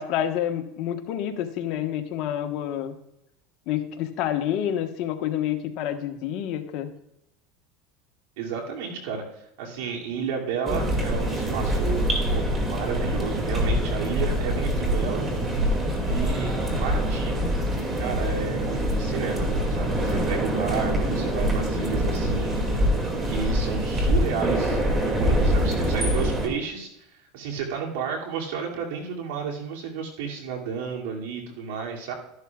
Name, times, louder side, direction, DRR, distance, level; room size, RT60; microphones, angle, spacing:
voice 1, 0.0-2.9 3.7-6.9, left 10 dB, 60° left, 6 dB, 1.2 m, -28 dB
voice 2, 8.4-9.2 9.6-15.2 16.0-17.4 18.0-19.5 19.8-22.6 23.2-24.8 25.0-26.9 27.3-32.1, right 6 dB, 80° right, -1 dB, 2.6 m, -32 dB
sound 1, 10.7-26.5, equal, 20° right, 2.3 m, -24 dB
12.5 x 11.0 x 2.4 m, 0.82 s
supercardioid pair, 125°, 0 cm